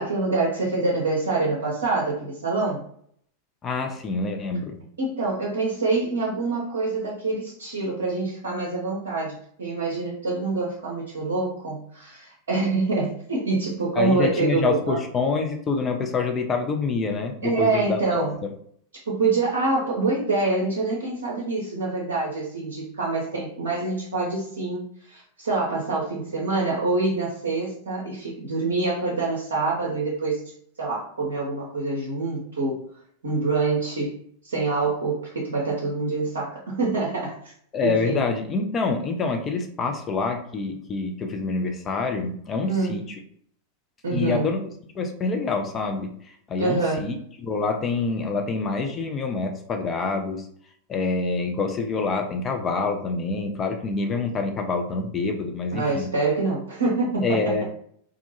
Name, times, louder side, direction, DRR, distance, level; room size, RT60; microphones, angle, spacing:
voice 1, 0.0-2.8 5.0-15.0 17.4-18.3 19.1-30.4 30.8-32.8 33.2-34.1 34.4-37.5 37.8-38.2 42.7-43.0 44.0-44.5 46.6-47.1 55.7-57.6, right 3 dB, 65° right, -4 dB, 0.6 m, -26 dB
voice 2, 3.6-4.8 14.0-18.3 37.7-43.0 44.1-44.7 44.9-46.1 46.5-50.5 50.9-56.1 57.2-57.6, left 4 dB, 25° left, 4 dB, 0.4 m, -26 dB
2.3 x 2.2 x 2.9 m, 0.64 s
figure-of-eight pair, 90°, 0 cm